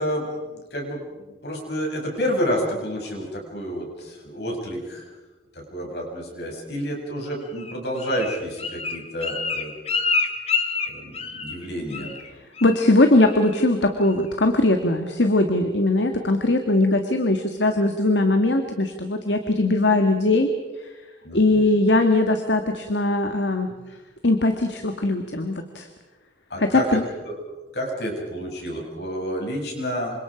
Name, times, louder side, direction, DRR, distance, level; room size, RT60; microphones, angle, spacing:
voice 1, 0.0-5.1 5.7-9.7 10.9-12.2 21.2-21.6 26.5-27.0 27.3-27.4 27.7-30.2, equal, 65° left, 0 dB, 7.3 m, -29 dB
Bird, 7.6-11.6 11.9-12.3 12.6-12.9 13.2-13.6 14.0-14.1, left 4 dB, 35° left, 1.9 m, -27 dB
voice 2, 12.6-20.5 21.3-23.7 24.2-25.9 26.6-27.0, left 2 dB, 85° left, 6 dB, 1.8 m, -20 dB
28.0 x 25.5 x 5.1 m, 1.2 s
head